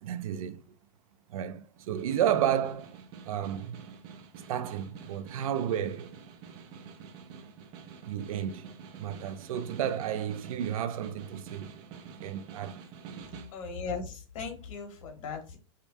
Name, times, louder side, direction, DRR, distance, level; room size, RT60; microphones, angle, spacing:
voice 1, 0.0-0.6 1.3-3.0 3.3-3.9 4.5-6.2 8.0-8.7 9.0-11.8 12.2-12.8, right 10 dB, 90° right, 0.5 m, -32 dB
Snare drum, 1.8-13.6, right 6 dB, 25° right, 0.4 m, -47 dB
voice 2, 13.5-15.6, left 5 dB, 70° left, 1.2 m, -38 dB
4.9 x 2.2 x 2.6 m
supercardioid pair, 170°, 17 cm